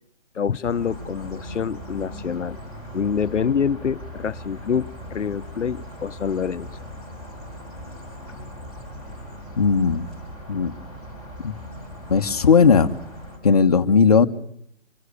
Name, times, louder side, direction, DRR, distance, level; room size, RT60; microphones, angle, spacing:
voice 1, 0.3-2.6 2.9-6.7, left 7 dB, 80° left, 14 dB, 1.1 m, -26 dB
sound 1, 0.6-13.4, equal, 10° right, 5.6 m, -39 dB
voice 2, 9.6-10.1 10.5-10.7 11.4-11.5 12.1-12.9 13.4-14.3, left 5 dB, 35° left, 7 dB, 1.4 m, -17 dB
26.0 x 20.0 x 8.4 m, 0.72 s
hypercardioid pair, 175°, 35 cm